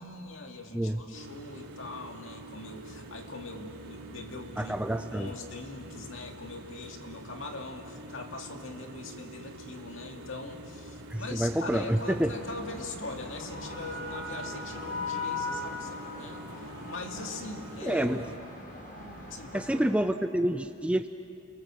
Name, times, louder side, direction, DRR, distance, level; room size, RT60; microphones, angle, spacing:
voice 1, 0.0-4.7 5.1-16.5 16.9-18.1 19.3-19.9, left 3 dB, 55° left, 3 dB, 2.3 m, -42 dB
sound 1, 1.1-18.4, right 1 dB, 90° right, 2.5 m, -46 dB
voice 2, 4.6-5.3 11.1-12.3 17.8-18.2 19.5-21.1, right 1 dB, 5° right, 8 dB, 0.5 m, -28 dB
sound 2, 11.8-19.9, left 3 dB, 40° left, 5.2 m, -40 dB
30.0 x 23.0 x 7.6 m, 2.6 s
head